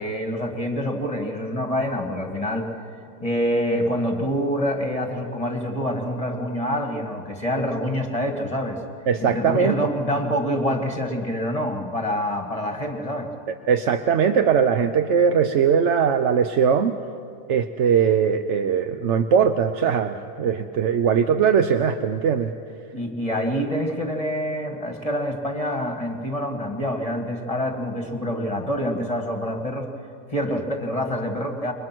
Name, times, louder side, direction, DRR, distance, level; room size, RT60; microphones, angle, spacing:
voice 1, 0.0-2.9 3.2-8.8 9.2-13.3 22.9-29.9 30.3-31.7, equal, 20° left, 3 dB, 2.1 m, -26 dB
voice 2, 9.1-9.8 13.7-17.0 17.5-22.5, right 7 dB, 55° right, 8 dB, 0.9 m, -20 dB
28.5 x 23.5 x 6.1 m, 2.5 s
omnidirectional pair, 1.8 m